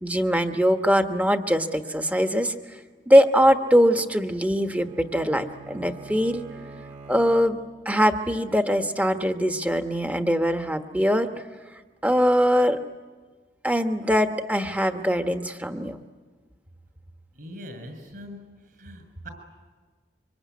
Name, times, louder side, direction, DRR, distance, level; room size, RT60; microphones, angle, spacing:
voice 1, 0.0-2.6 3.1-6.4 7.1-7.6 7.8-11.3 12.0-12.8 13.6-16.0, equal, 10° right, 7 dB, 1.2 m, -22 dB
Bowed string instrument, 4.2-7.9, right 4 dB, 35° right, 1.8 m, -45 dB
voice 2, 17.3-18.4 18.7-19.3, equal, 55° right, 7 dB, 7.0 m, -41 dB
25.0 x 24.5 x 9.5 m, 1.4 s
head